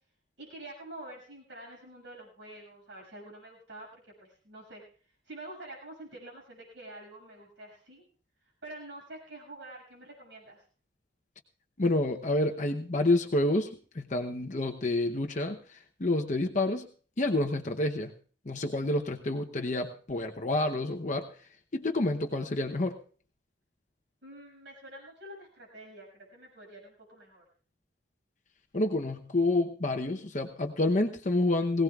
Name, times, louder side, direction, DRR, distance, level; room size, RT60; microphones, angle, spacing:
voice 1, 0.4-8.0 8.6-10.6 24.2-27.4, right 1 dB, 75° right, -1 dB, 6.6 m, -47 dB
voice 2, 11.8-16.9 17.2-18.1 18.5-21.3 21.7-23.0 28.7-31.8, left 2 dB, 40° left, 4 dB, 0.8 m, -28 dB
21.0 x 17.0 x 2.4 m, 0.42 s
head